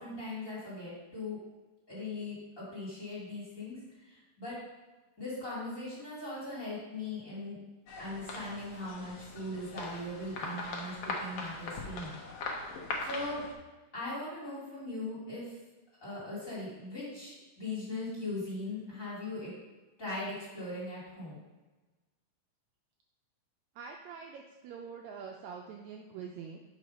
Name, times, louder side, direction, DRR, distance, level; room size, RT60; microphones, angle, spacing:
voice 1, 0.0-1.4 1.9-4.6 5.2-7.6 8.0-12.2 13.0-13.4 13.9-15.6 16.0-19.5 20.0-21.4, left 2 dB, 25° left, -8 dB, 2.8 m, -39 dB
sound 1, 7.9-13.5, left 3 dB, 65° left, 1.6 m, -40 dB
voice 2, 23.7-26.6, right 6 dB, 80° right, 2 dB, 1.7 m, -45 dB
6.5 x 4.9 x 5.3 m, 1.2 s
omnidirectional pair, 3.6 m